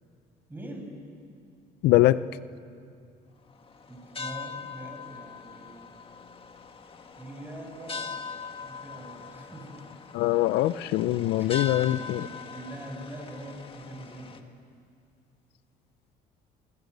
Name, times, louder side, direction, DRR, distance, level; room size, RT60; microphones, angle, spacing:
voice 1, 0.5-1.0 3.9-5.9 7.2-8.2 8.6-9.9 11.4-14.5, right 1 dB, 10° right, 2 dB, 6.5 m, -43 dB
voice 2, 1.8-2.2 10.1-12.3, left 15 dB, 85° left, 15 dB, 0.7 m, -23 dB
sound 1, 3.5-14.4, left 5 dB, 30° left, 2.0 m, -41 dB
27.5 x 24.5 x 8.1 m, 2.3 s
cardioid pair, 110°, 17 cm